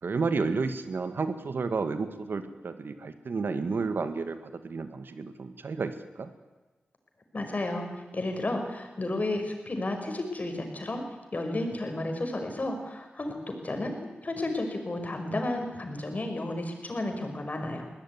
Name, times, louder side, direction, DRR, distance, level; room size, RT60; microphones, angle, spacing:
voice 1, 0.0-6.3, right 4 dB, 70° right, 9 dB, 2.0 m, -31 dB
voice 2, 7.3-11.0 11.3-14.0 14.2-17.8, left 2 dB, 45° left, 5 dB, 5.4 m, -32 dB
21.5 x 17.0 x 9.5 m, 1.2 s
cardioid pair, 55°, 4 cm